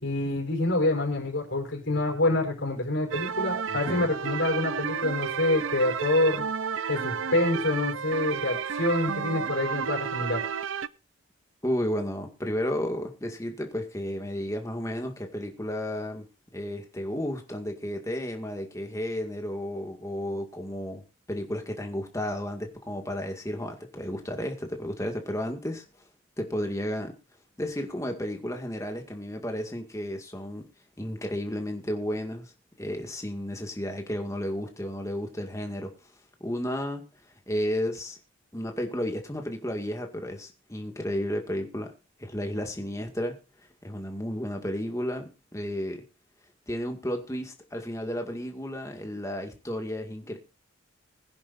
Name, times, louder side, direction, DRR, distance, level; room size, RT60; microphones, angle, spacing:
voice 1, 0.0-6.5 6.9-10.4, left 2 dB, 70° left, 5.2 m, -26 dB
sound 1, 3.1-10.9, right 6 dB, 75° right, 0.6 m, -31 dB
voice 2, 3.7-4.1 11.6-16.3 16.5-21.0 21.3-25.8 26.4-27.2 27.6-30.7 31.0-32.5 32.8-35.9 36.4-37.1 37.5-38.2 38.5-41.9 42.2-43.4 43.8-46.0 46.7-50.4, equal, 15° left, 2.0 m, -32 dB
21.5 x 10.5 x 2.6 m
head